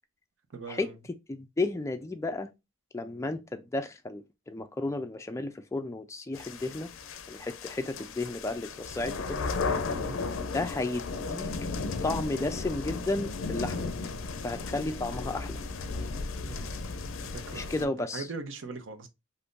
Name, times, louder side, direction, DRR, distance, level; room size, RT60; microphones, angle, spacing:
voice 1, 0.5-1.0 9.9-10.2 16.5-16.7 17.2-19.1, right 4 dB, 65° right, 0.6 m, -41 dB
voice 2, 1.3-2.5 2.9-6.9 7.3-9.4 10.5-11.5 12.0-13.9 14.4-15.6 17.5-18.3, left 2 dB, 15° left, 0.3 m, -33 dB
sound 1, 6.3-17.8, left 4 dB, 80° left, 0.4 m, -35 dB
2.6 x 2.5 x 3.5 m
head